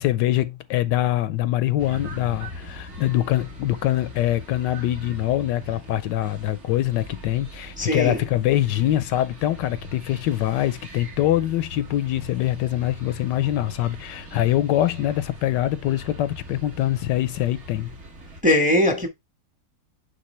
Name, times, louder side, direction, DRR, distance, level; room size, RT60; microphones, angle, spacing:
voice 1, 0.0-18.0, left 13 dB, 75° left, 1.2 m, -24 dB
sound 1, 1.8-18.4, equal, 40° right, 1.8 m, -40 dB
voice 2, 7.8-8.2 18.4-19.1, left 1 dB, 5° right, 1.0 m, -20 dB
8.9 x 3.8 x 3.2 m
omnidirectional pair, 2.0 m